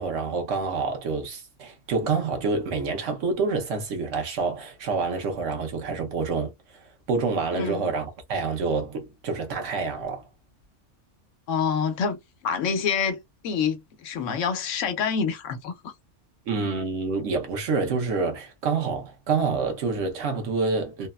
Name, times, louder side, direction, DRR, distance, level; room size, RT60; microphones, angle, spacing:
voice 1, 0.0-6.8 7.1-10.2 16.5-21.1, right 4 dB, 75° right, 1.1 m, -27 dB
voice 2, 11.5-12.2 12.4-15.9, left 6 dB, 90° left, 1.0 m, -27 dB
3.2 x 2.0 x 2.2 m
omnidirectional pair, 1.3 m